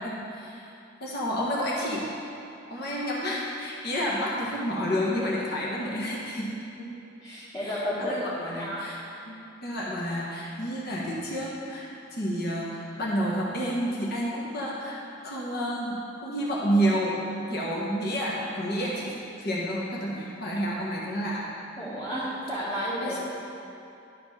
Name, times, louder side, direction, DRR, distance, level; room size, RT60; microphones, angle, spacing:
voice 1, 0.0-0.7 1.0-2.0 2.7-6.5 7.6-15.0 15.2-17.2 17.5-21.5 22.7-23.2, equal, 55° left, -5 dB, 1.2 m, -30 dB
voice 2, 7.2-8.2 8.6-8.8 21.8-23.2, equal, 20° left, -10 dB, 1.4 m, -32 dB
11.0 x 4.4 x 5.4 m, 2.7 s
head